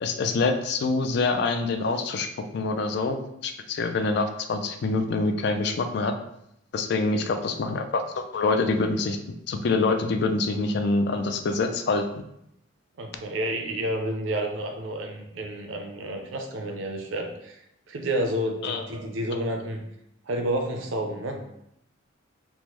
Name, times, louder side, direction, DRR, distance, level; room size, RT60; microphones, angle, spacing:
voice 1, 0.0-2.3 2.5-6.1 6.7-9.2 9.5-12.1 18.6-18.8, left 3 dB, 55° left, 6 dB, 0.3 m, -25 dB
voice 2, 13.0-17.6 17.9-19.8 20.3-21.4, right 1 dB, 70° right, 3 dB, 0.5 m, -30 dB
3.4 x 2.0 x 3.0 m, 0.78 s
head